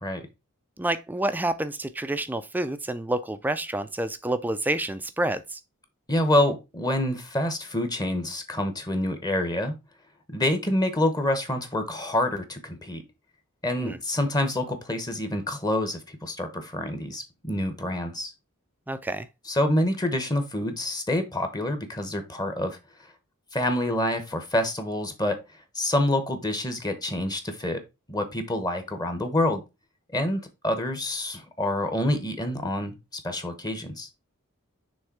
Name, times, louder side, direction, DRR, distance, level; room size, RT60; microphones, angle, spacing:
voice 1, 0.8-5.6 13.8-14.0 18.9-19.3, right 1 dB, 10° right, 0.4 m, -28 dB
voice 2, 6.1-9.7 10.3-13.0 13.6-18.3 19.5-22.8 23.5-25.4 25.7-27.8 28.1-29.6 30.1-33.0 33.2-34.1, left 1 dB, 20° left, 0.9 m, -27 dB
6.4 x 3.3 x 4.6 m
head